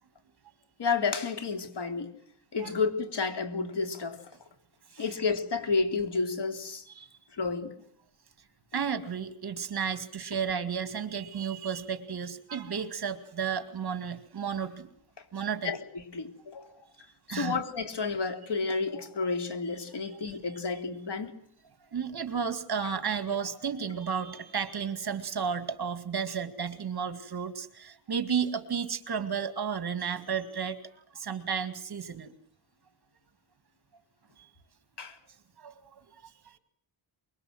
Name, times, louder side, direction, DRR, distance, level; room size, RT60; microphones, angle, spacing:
voice 1, 0.8-2.1 2.5-4.2 5.0-6.8 7.3-7.8 15.6-15.8 16.1-16.7 17.3-21.3 35.0-35.2, left 4 dB, 55° left, 7 dB, 3.3 m, -31 dB
voice 2, 8.7-14.9 15.3-15.8 17.3-17.6 20.0-20.4 21.9-30.8 31.1-32.3 34.4-34.5 35.6-36.6, right 7 dB, 50° right, 11 dB, 2.2 m, -33 dB
24.5 x 22.5 x 7.9 m, 0.65 s
wide cardioid pair, 120°, 50 cm